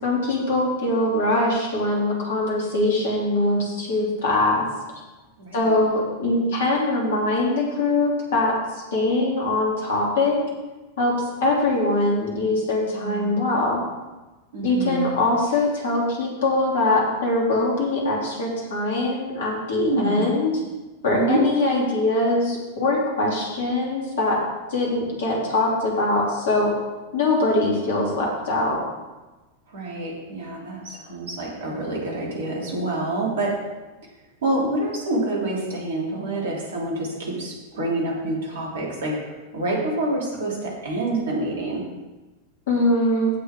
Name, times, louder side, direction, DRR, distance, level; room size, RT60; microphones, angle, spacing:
voice 1, 0.0-4.6 5.5-10.4 11.0-11.1 11.4-13.8 14.6-20.5 21.0-24.4 24.7-26.7 27.1-28.8 42.7-43.3, left 2 dB, 60° left, -2 dB, 3.2 m, -22 dB
voice 2, 5.4-5.8 12.9-13.5 14.5-15.1 19.7-20.3 21.1-21.4 29.7-33.6 34.4-39.2 39.5-41.8, right 2 dB, 60° right, -3 dB, 3.1 m, -27 dB
16.5 x 5.7 x 3.8 m, 1.2 s
figure-of-eight pair, 90°, 0 cm